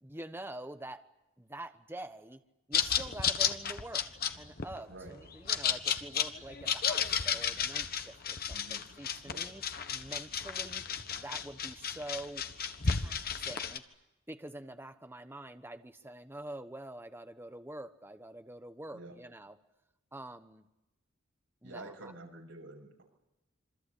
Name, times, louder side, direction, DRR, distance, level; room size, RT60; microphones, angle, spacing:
voice 1, 0.0-1.0 1.4-2.4 2.7-9.6 9.9-10.8 11.2-12.4 12.8-13.8 14.3-19.6 20.1-20.6 21.6-22.1, right 1 dB, 10° right, 8 dB, 1.2 m, -46 dB
sound 1, 2.7-13.8, left 7 dB, 50° left, 1.4 m, -33 dB
voice 2, 8.5-8.8 9.2-9.4 18.9-19.1 21.6-23.0, right 2 dB, 70° right, 2 dB, 7.0 m, -48 dB
27.0 x 25.5 x 8.5 m, 0.94 s
head